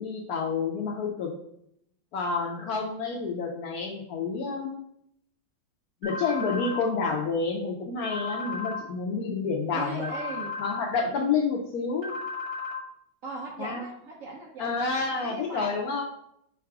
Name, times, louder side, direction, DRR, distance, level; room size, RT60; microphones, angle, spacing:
voice 1, 0.0-1.3 2.1-4.8 6.0-10.1 10.6-12.1 13.6-13.8 14.6-16.0, left 4 dB, 80° left, 0 dB, 0.8 m, -29 dB
sound 1, 6.0-6.8 8.0-8.8 10.0-10.8 12.0-12.8, left 4 dB, 40° right, 1.4 m, -34 dB
voice 2, 9.7-10.5 13.2-14.7 15.2-15.7, right 2 dB, 80° right, -1 dB, 0.7 m, -38 dB
4.7 x 2.3 x 4.6 m, 0.75 s
omnidirectional pair, 2.2 m